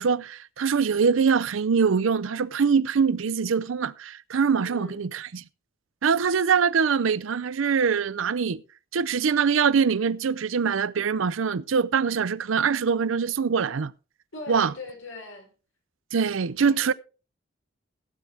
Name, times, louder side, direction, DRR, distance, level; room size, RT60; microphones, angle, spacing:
voice 1, 0.0-5.4 6.0-8.6 8.9-13.9 14.5-14.7 16.1-16.9, right 6 dB, 85° right, 0.5 m, -23 dB
voice 2, 4.6-5.0 14.3-15.5 16.6-16.9, left 2 dB, 85° left, 5.4 m, -40 dB
16.5 x 8.6 x 3.4 m
head